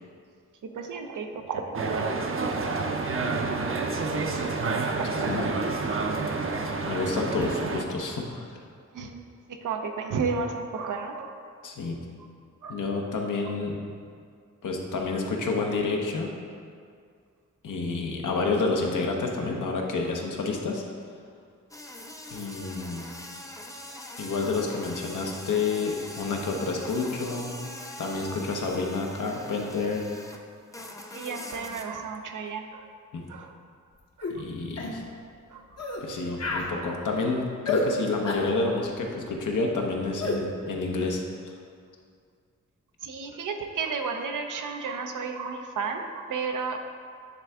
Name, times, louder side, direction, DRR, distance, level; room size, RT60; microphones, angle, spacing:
voice 1, 0.6-2.2 3.6-3.7 8.9-9.2 9.5-11.5 12.6-12.8 31.1-32.9 33.3-33.5 34.2-34.3 35.5-35.6 43.0-46.8, right 5 dB, 85° right, 5 dB, 0.6 m, -32 dB
sound 1, 1.7-7.8, right 3 dB, 45° right, 0.6 m, -29 dB
voice 2, 5.1-5.5 6.8-8.5 11.6-12.0 12.7-13.8 14.6-16.4 17.6-20.8 22.3-23.1 24.2-27.5 28.0-30.1 33.1-33.2 34.3-35.0 36.0-41.2, left 3 dB, 80° left, 1 dB, 0.9 m, -29 dB
sound 2, 21.7-30.4 30.7-31.9, left 1 dB, 10° left, 0.6 m, -42 dB
sound 3, 34.2-34.4 34.8-35.0 35.8-36.0 36.4-36.7 37.7-37.9 38.3-38.5 40.2-40.4, left 2 dB, 55° left, 0.9 m, -29 dB
9.5 x 3.4 x 3.5 m, 2.2 s
cardioid pair, 65°, 30 cm